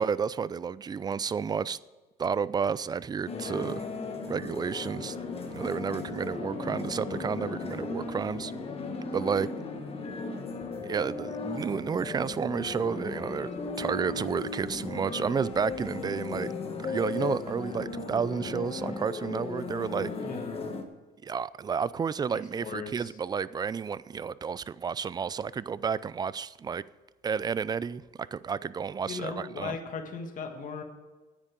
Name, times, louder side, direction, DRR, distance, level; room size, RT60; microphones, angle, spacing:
voice 1, 0.0-1.8 2.2-3.9 4.2-5.2 5.5-8.5 9.1-9.5 10.8-13.5 13.8-16.5 16.8-20.1 21.2-26.8 27.2-28.0 28.3-29.8, right 6 dB, 25° right, 0.4 m, -31 dB
sound 1, 3.3-20.8, left 4 dB, 35° left, 1.4 m, -36 dB
voice 2, 20.2-20.7 22.3-23.1 29.0-30.8, left 5 dB, 50° left, 1.7 m, -38 dB
9.8 x 8.9 x 7.6 m
cardioid pair, 110°, 17 cm